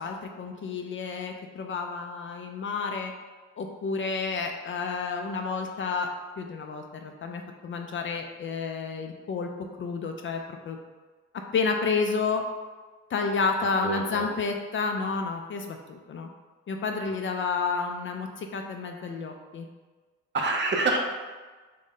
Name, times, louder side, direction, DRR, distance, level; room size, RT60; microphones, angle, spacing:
voice 1, 0.0-3.1 3.6-6.1 6.4-9.5 9.8-10.8 11.5-12.4 13.1-16.3 16.7-19.7, left 4 dB, 40° left, 3 dB, 0.4 m, -30 dB
voice 2, 13.8-14.3 20.3-21.0, right 3 dB, 35° right, 1 dB, 0.7 m, -26 dB
3.7 x 2.6 x 3.7 m, 1.3 s
cardioid pair, 90°, 30 cm